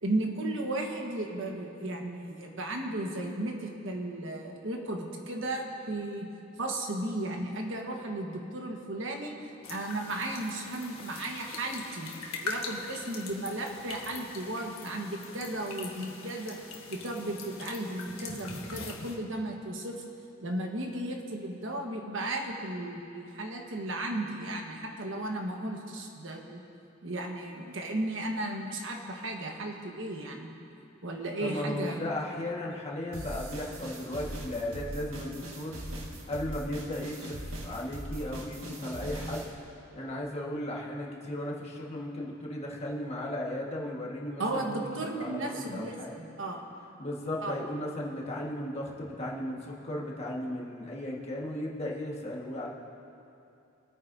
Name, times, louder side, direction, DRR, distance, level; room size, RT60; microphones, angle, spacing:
voice 1, 0.0-6.3 6.6-9.4 9.7-16.6 16.9-20.0 20.4-26.6 27.0-30.5 31.0-32.0 44.4-46.6 47.4-47.6, right 1 dB, 65° right, 1 dB, 1.3 m, -35 dB
sound 1, 9.6-19.1, left 4 dB, 80° left, 1.4 m, -42 dB
voice 2, 31.4-35.7 36.3-39.5 39.9-44.8 45.2-46.1 47.0-52.7, left 1 dB, 30° left, -3 dB, 1.5 m, -36 dB
sound 2, 33.1-39.5, right 1 dB, 85° right, 1.7 m, -40 dB
26.0 x 9.3 x 2.7 m, 2.7 s
head